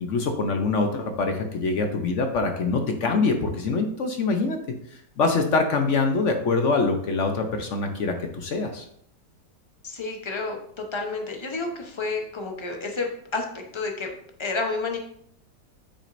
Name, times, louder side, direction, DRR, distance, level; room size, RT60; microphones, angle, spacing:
voice 1, 0.0-8.9, left 3 dB, 60° left, 5 dB, 0.8 m, -24 dB
voice 2, 9.8-14.1 14.4-15.0, left 3 dB, 30° left, 3 dB, 0.5 m, -30 dB
8.5 x 6.1 x 2.6 m, 0.68 s
omnidirectional pair, 1.9 m